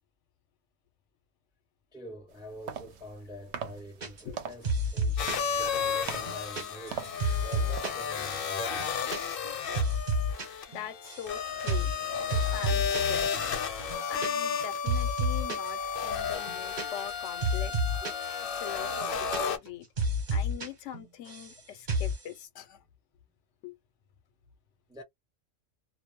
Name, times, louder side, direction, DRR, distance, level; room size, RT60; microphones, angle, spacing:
voice 1, 1.9-7.1 7.4-8.9 24.9-25.0, left 1 dB, 5° right, 0.4 m, -46 dB
sound 1, 2.3-8.4, right 7 dB, 70° right, 0.8 m, -43 dB
sound 2, 4.0-4.4 4.6-5.5 5.9-8.0 8.3-8.4 8.7-9.2 9.4-10.5 10.7-11.3 11.7-12.0 12.3-13.2 13.4-13.5 13.8-14.6 14.9-15.7 16.1-18.3 18.5-18.6 18.9-19.7 20.0-20.7 20.9-21.6 21.9-22.2, equal, 45° right, 1.0 m, -30 dB
sound 3, 5.2-19.6, left 6 dB, 60° left, 0.7 m, -33 dB
voice 2, 10.7-11.9 12.3-13.5 14.1-18.0 18.6-19.9 20.3-22.8 23.6-23.7, left 9 dB, 80° left, 0.9 m, -42 dB
2.3 x 2.0 x 3.0 m
omnidirectional pair, 1.2 m